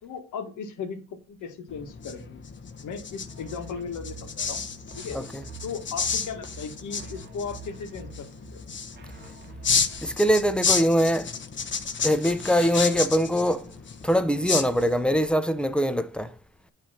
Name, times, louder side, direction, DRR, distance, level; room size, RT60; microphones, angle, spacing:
voice 1, 0.0-2.4 2.8-4.7 4.9-5.2 5.6-8.6, left 6 dB, 75° left, 1.6 m, -37 dB
sound 1, 1.7-15.3, left 5 dB, 40° left, 1.1 m, -32 dB
sound 2, 3.3-10.6, right 3 dB, 35° right, 1.3 m, -46 dB
voice 2, 10.0-11.3 12.0-13.7 14.0-16.3, equal, 5° left, 0.7 m, -23 dB
9.2 x 3.4 x 5.7 m
cardioid pair, 90°, 30 cm